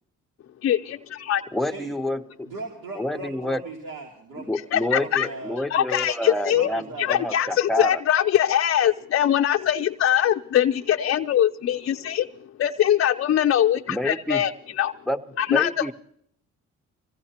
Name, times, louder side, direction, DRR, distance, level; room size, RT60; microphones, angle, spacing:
voice 1, 0.6-1.4 4.7-5.3 5.7-6.7 7.0-12.3 12.6-14.9 15.4-15.8, left 10 dB, 50° left, 6 dB, 0.5 m, -22 dB
voice 2, 1.5-2.5 2.9-3.6 4.4-8.0 13.9-14.4 15.1-15.2 15.5-15.9, left 1 dB, ahead, 6 dB, 0.8 m, -28 dB
voice 3, 2.4-5.6 6.5-7.1, right 2 dB, 80° right, -1 dB, 2.9 m, -38 dB
25.5 x 16.0 x 2.9 m, 0.68 s
cardioid pair, 90°, 30 cm